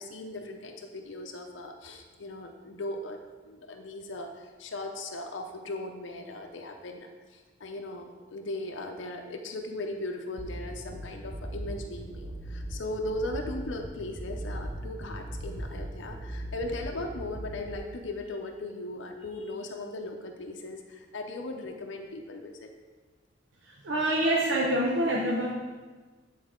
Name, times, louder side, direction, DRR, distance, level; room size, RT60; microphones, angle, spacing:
voice 1, 0.0-3.2 3.4-22.7, left 2 dB, 80° left, 2 dB, 0.6 m, -38 dB
sound 1, 10.4-17.8, right 1 dB, 20° right, 0.4 m, -39 dB
voice 2, 23.8-25.5, right 1 dB, 85° right, -3 dB, 0.8 m, -26 dB
9.3 x 4.0 x 3.6 m, 1.3 s
head